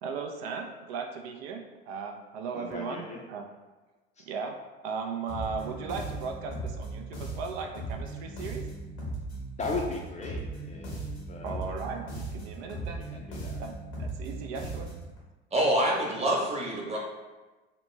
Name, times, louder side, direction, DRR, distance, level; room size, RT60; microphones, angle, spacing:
voice 1, 0.0-3.4 4.3-4.6 4.8-8.7 11.4-13.0 13.6-14.9, right 5 dB, 70° right, 3 dB, 0.4 m, -37 dB
voice 2, 2.5-3.2 4.2-4.3 9.6-11.0 11.3-11.8 13.1-13.6, left 3 dB, 20° left, -1 dB, 0.4 m, -37 dB
sound 1, 5.3-15.1, right 2 dB, 85° left, 1.0 m, -37 dB
voice 3, 15.5-17.0, right 1 dB, 20° right, -2 dB, 0.9 m, -26 dB
2.9 x 2.1 x 3.2 m, 1.2 s
hypercardioid pair, 75°, 32 cm